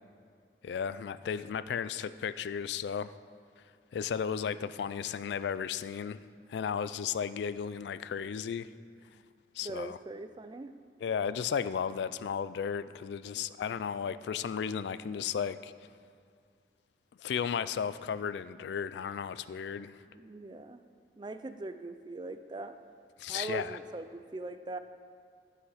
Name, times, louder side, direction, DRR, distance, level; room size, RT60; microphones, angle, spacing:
voice 1, 0.6-3.1 3.9-6.2 6.5-8.7 9.6-10.0 11.0-15.7 17.2-19.9 23.2-23.8, left 7 dB, 75° left, 15 dB, 0.3 m, -34 dB
voice 2, 9.6-10.7 13.3-13.4 20.1-20.8 21.2-22.8 23.3-24.8, right 2 dB, 25° right, 10 dB, 0.3 m, -41 dB
11.5 x 5.7 x 5.6 m, 2.2 s
head